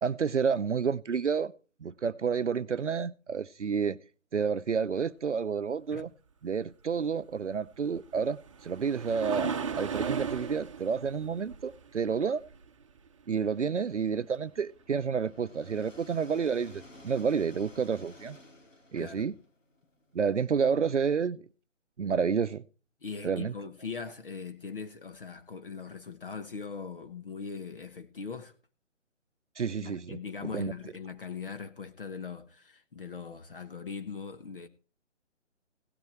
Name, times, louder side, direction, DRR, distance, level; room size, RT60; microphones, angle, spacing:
voice 1, 0.0-1.5 1.8-4.0 4.3-6.1 6.4-12.4 13.3-18.4 18.9-19.3 20.1-21.4 22.0-22.6 23.2-23.5 29.6-30.7, right 6 dB, 70° right, 0.7 m, -30 dB
sound 1, 7.8-13.1 17.0-17.1 17.7-17.8, right 6 dB, 25° right, 0.9 m, -36 dB
sound 2, 14.3-20.2, left 1 dB, 85° left, 4.1 m, -53 dB
voice 2, 19.0-19.3 23.0-28.5 29.7-34.7, left 5 dB, 45° left, 1.3 m, -40 dB
17.0 x 9.5 x 4.5 m
figure-of-eight pair, 150°, 37 cm